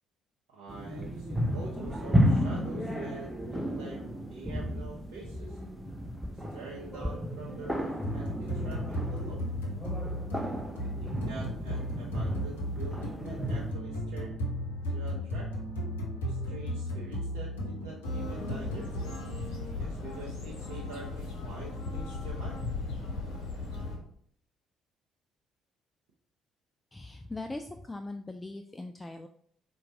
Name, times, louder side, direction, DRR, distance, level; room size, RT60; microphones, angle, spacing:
voice 1, 0.5-4.0 4.3-5.6 6.5-9.4 10.8-14.3 14.9-15.5 16.2-18.9 19.7-22.6, right 3 dB, 70° right, -4 dB, 0.7 m, -45 dB
sound 1, 0.7-13.7, equal, 5° right, 0.8 m, -33 dB
sound 2, 8.0-19.0, equal, 80° left, 0.7 m, -35 dB
sound 3, 18.0-24.0, left 3 dB, 65° left, 1.1 m, -37 dB
voice 2, 26.9-29.3, left 2 dB, 20° left, 6 dB, 0.3 m, -40 dB
4.5 x 2.5 x 4.5 m, 0.65 s
figure-of-eight pair, 45°, 0 cm